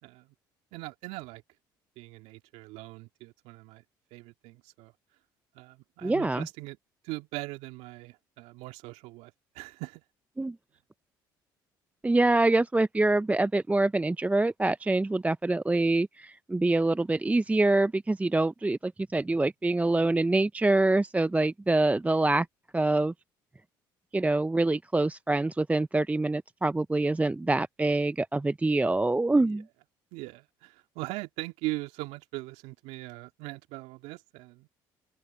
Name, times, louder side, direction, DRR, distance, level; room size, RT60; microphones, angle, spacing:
voice 1, 0.7-1.4 2.0-3.8 4.1-4.9 5.5-6.8 7.0-10.0 29.4-29.6 30.1-34.7, right 21 dB, 70° right, 2.1 m, -40 dB
voice 2, 6.0-6.5 10.4-10.5 12.0-22.5 22.7-23.1 24.1-29.6, right 2 dB, 15° right, 0.6 m, -25 dB
open air
hypercardioid pair, 55°, 11 cm